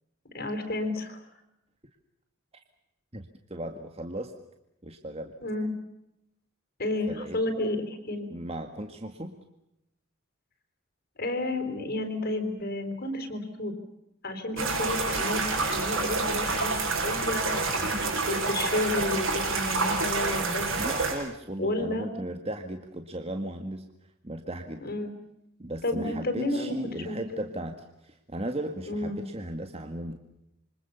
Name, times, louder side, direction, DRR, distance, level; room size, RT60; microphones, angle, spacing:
voice 1, 0.3-1.2 5.4-5.7 6.8-8.3 11.2-13.7 14.2-18.0 18.3-20.7 21.6-22.1 24.8-25.1 25.8-26.8 27.0-27.2 28.9-29.3, left 2 dB, 50° left, 7 dB, 4.3 m, -31 dB
voice 2, 3.1-4.3 4.8-5.3 7.1-7.4 8.3-9.3 20.8-23.8 24.2-24.8 25.6-27.8 28.0-30.2, right 1 dB, 30° right, 6 dB, 1.9 m, -36 dB
sound 1, 14.6-21.1, right 3 dB, 75° right, 7.3 m, -28 dB
27.5 x 25.0 x 7.0 m, 0.86 s
head